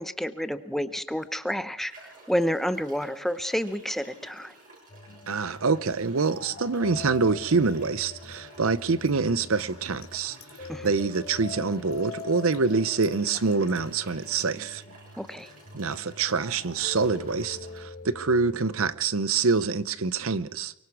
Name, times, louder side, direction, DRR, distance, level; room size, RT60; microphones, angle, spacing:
voice 1, 0.0-4.5 10.7-10.9 15.2-15.5, equal, ahead, 0.7 m, -30 dB
sound 1, 1.1-1.2 1.9-17.8, right 2 dB, 40° right, 6.8 m, -52 dB
sound 2, 4.9-18.9, left 4 dB, 45° left, 3.7 m, -43 dB
voice 2, 5.3-14.8 15.7-20.7, right 4 dB, 70° right, 0.7 m, -26 dB
sound 3, 8.0-8.2 9.1-10.9 11.1-11.7 11.9-12.2 12.5-13.9, left 4 dB, 70° left, 3.0 m, -50 dB
23.5 x 23.5 x 4.7 m
head